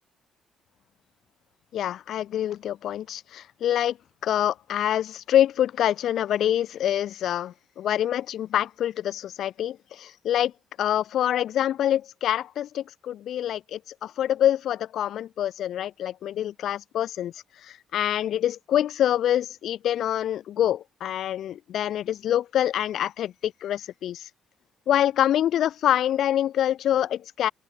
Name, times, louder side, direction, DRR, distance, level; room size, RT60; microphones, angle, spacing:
voice 1, 1.7-4.0 4.2-10.5 10.8-17.3 17.6-24.3 24.9-27.5, left 11 dB, 70° left, 2.6 m, -26 dB
open air
cardioid pair, 110°, 0 cm